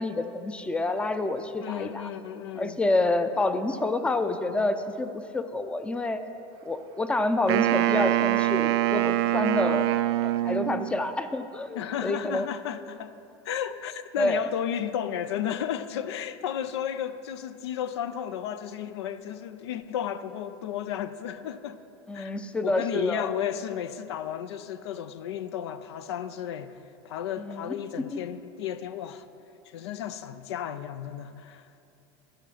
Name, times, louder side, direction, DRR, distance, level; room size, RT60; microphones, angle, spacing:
voice 1, 0.0-2.1 2.6-6.2 6.6-9.9 10.4-12.5 14.2-14.4 22.1-23.4 27.4-28.2, left 2 dB, 10° left, 0.4 m, -28 dB
voice 2, 1.6-2.8 11.7-13.1 13.4-21.8 22.1-22.4 22.6-26.8 27.0-29.2 29.7-31.6, left 9 dB, 90° left, 0.4 m, -33 dB
Wind instrument woodwind instrument, 7.5-11.0, right 15 dB, 80° right, 0.4 m, -24 dB
13.5 x 5.0 x 5.7 m
supercardioid pair, 115°, 14 cm